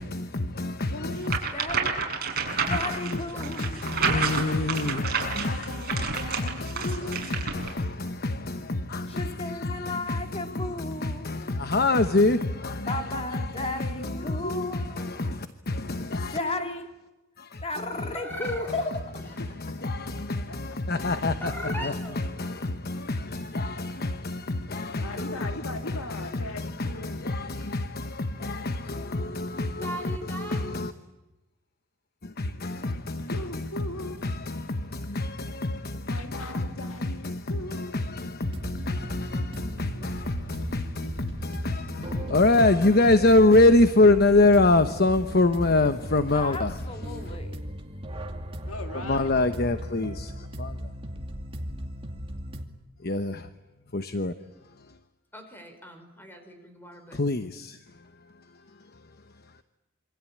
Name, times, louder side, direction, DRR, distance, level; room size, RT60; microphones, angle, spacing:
voice 1, 0.0-1.4 2.5-13.5 13.8-14.6 15.0-16.4 17.4-17.6 19.6-25.5 26.1-30.9 32.2-33.6 34.2-46.7 47.3-47.4 49.1-50.3 50.6-50.7 53.0-53.5 53.9-54.3 57.1-57.8, left 2 dB, 45° left, 1.1 m, -26 dB
voice 2, 0.9-1.4 5.4-7.3 12.9-14.9 16.4-16.8 19.4-19.7 20.5-21.2 25.0-27.3 33.3-34.2 36.1-37.9 48.6-49.4, left 1 dB, 70° left, 2.6 m, -39 dB
sound 1, 1.2-7.7, right 5 dB, 45° right, 6.5 m, -30 dB
voice 3, 1.5-2.0 2.7-3.9 9.1-11.5 12.8-15.4 16.2-16.9 17.6-18.8 46.3-47.6, left 2 dB, 25° left, 3.0 m, -35 dB
voice 4, 3.3-3.8 5.1-5.6 7.0-7.5 18.1-18.8 21.4-22.2 29.8-30.8 55.3-57.2, right 1 dB, 10° left, 4.9 m, -40 dB
sound 2, 38.4-52.6, equal, 25° right, 2.5 m, -37 dB
27.5 x 25.0 x 8.7 m
head